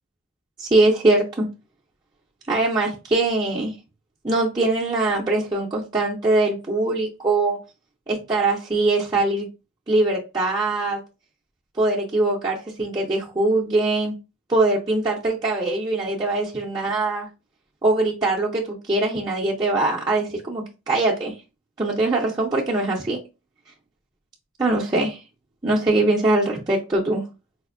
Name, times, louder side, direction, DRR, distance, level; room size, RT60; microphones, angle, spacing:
voice 1, 0.6-1.5 2.5-3.7 4.2-7.6 8.1-9.5 9.9-11.0 11.8-14.1 14.5-17.3 17.8-21.3 21.8-23.2 24.6-25.2 25.6-27.2, right 2 dB, 20° right, 0.5 m, -22 dB
4.1 x 2.6 x 2.5 m
head